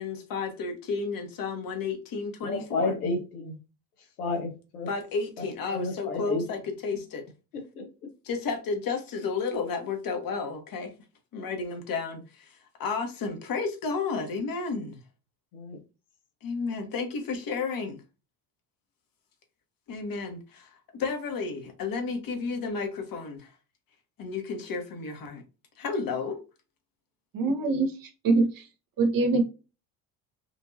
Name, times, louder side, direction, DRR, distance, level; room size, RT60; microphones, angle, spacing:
voice 1, 0.0-3.0 4.9-7.2 8.2-10.9 11.3-15.0 16.4-18.0 19.9-23.5 24.2-25.4 25.8-26.4, left 4 dB, 50° left, 1.3 m, -32 dB
voice 2, 2.4-3.6 4.2-4.9 5.4-6.5 7.7-7.9 15.5-15.8, left 3 dB, 85° left, 1.2 m, -31 dB
voice 3, 27.3-27.9 28.2-28.5 29.0-29.4, right 3 dB, 50° right, 1.1 m, -22 dB
4.4 x 2.7 x 2.7 m
hypercardioid pair, 70°, 44 cm